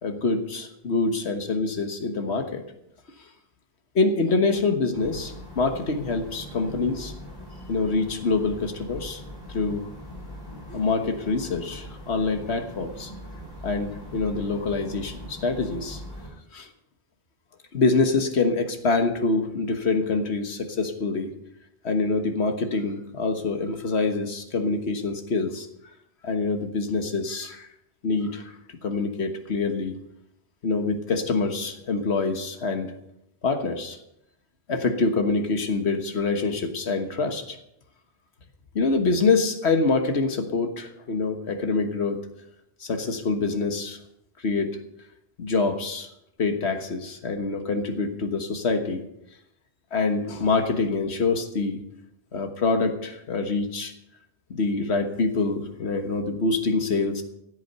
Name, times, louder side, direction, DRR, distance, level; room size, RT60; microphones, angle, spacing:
voice 1, 0.0-2.6 3.9-7.1 7.7-9.2 9.5-9.8 10.7-13.1 13.6-16.0 16.5-16.7 17.7-21.3 21.8-25.7 26.2-27.7 28.0-28.5 28.8-30.0 30.6-32.9 33.4-34.0 34.7-37.6 38.7-42.2 42.8-44.0 44.4-44.7 45.4-46.1 46.4-49.0 49.9-51.8 52.3-53.9 54.5-57.2, left 3 dB, 85° left, 6 dB, 1.7 m, -25 dB
sound 1, 4.9-16.3, equal, 20° left, 4.9 m, -41 dB
15.5 x 8.6 x 6.7 m, 0.80 s
omnidirectional pair, 1.1 m